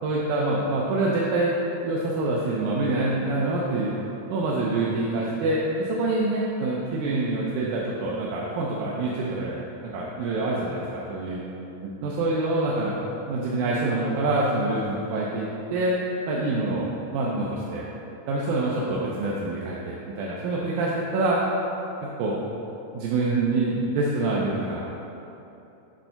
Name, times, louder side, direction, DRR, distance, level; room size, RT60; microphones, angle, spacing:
voice 1, 0.0-1.6 1.8-3.9 4.3-11.4 12.0-13.0 13.3-16.0 16.3-17.9 18.3-21.4 22.0-22.5 22.9-24.8, right 2 dB, 80° right, -5 dB, 2.2 m, -26 dB
8.8 x 3.3 x 5.7 m, 3.0 s
omnidirectional pair, 3.5 m